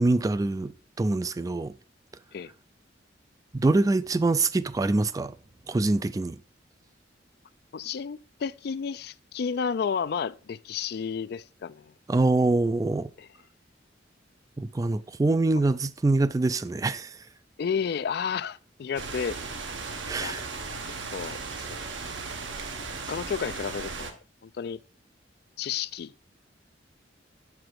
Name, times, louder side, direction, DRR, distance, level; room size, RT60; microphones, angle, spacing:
voice 1, 0.0-1.7 3.5-5.3 5.7-6.4 12.1-13.1 14.6-17.1 20.0-20.5, right 2 dB, 20° right, 0.3 m, -24 dB
voice 2, 7.7-11.9 13.2-13.3 15.6-15.7 17.6-19.4 20.2-20.8 21.1-21.8 23.1-24.8 25.6-26.1, left 6 dB, 60° left, 0.3 m, -32 dB
sound 1, 19.0-24.1, right 4 dB, 85° right, 1.2 m, -36 dB
7.7 x 6.0 x 4.7 m
head